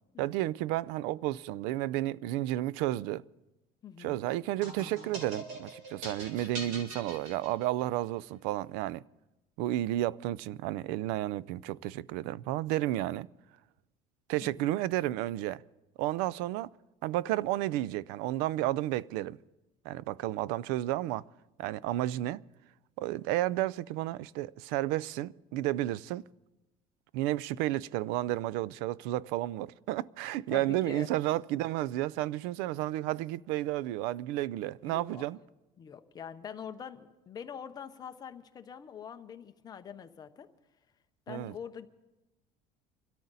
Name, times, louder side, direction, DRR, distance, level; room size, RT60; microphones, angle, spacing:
voice 1, 0.2-3.2 4.0-9.0 9.6-13.3 14.3-15.6 16.0-16.7 17.0-19.4 19.8-21.2 21.6-22.4 23.0-26.2 27.1-35.4 41.3-41.5, right 15 dB, 90° right, 0.4 m, -32 dB
voice 2, 3.8-4.2 14.4-14.7 30.5-31.1 34.8-35.2 35.8-40.5 41.3-41.9, left 8 dB, 25° left, 0.7 m, -44 dB
sound 1, 4.6-8.0, right 2 dB, 55° right, 3.3 m, -43 dB
24.5 x 13.5 x 4.1 m
cardioid pair, 165°, 16 cm